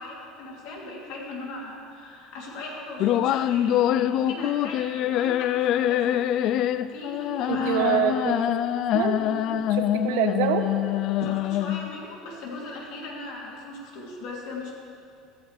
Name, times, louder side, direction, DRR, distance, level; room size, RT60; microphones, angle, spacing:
voice 1, 0.0-8.0 9.2-9.5 11.2-14.7, left 2 dB, 60° left, -3 dB, 2.9 m, -38 dB
sound 1, 3.0-12.0, left 11 dB, 40° left, 0.3 m, -25 dB
voice 2, 7.5-8.4 8.9-9.2 9.5-10.7 11.2-11.3, right 9 dB, 80° right, 7 dB, 1.0 m, -26 dB
15.0 x 14.5 x 3.3 m, 2.4 s
cardioid pair, 180°, 0 cm